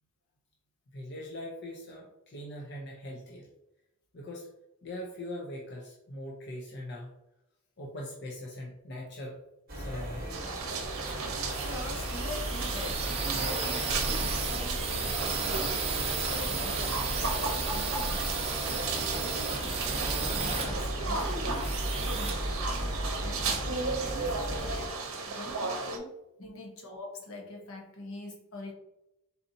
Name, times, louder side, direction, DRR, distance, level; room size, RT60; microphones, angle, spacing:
voice 1, 0.9-3.5 4.1-4.5 4.8-7.1 7.8-9.4 9.7-10.2 26.4-26.7, left 1 dB, 50° left, -2 dB, 0.7 m, -41 dB
sound 1, 9.7-24.9, equal, 45° right, 0.9 m, -36 dB
sound 2, 10.3-26.0, right 4 dB, 70° right, 0.7 m, -36 dB
sound 3, 10.6-23.3, right 4 dB, 25° right, 0.6 m, -34 dB
voice 2, 11.6-15.7 16.0-18.4 19.0-26.1 26.4-28.7, left 2 dB, 70° left, 1 dB, 1.0 m, -44 dB
4.2 x 4.1 x 2.7 m, 0.91 s
head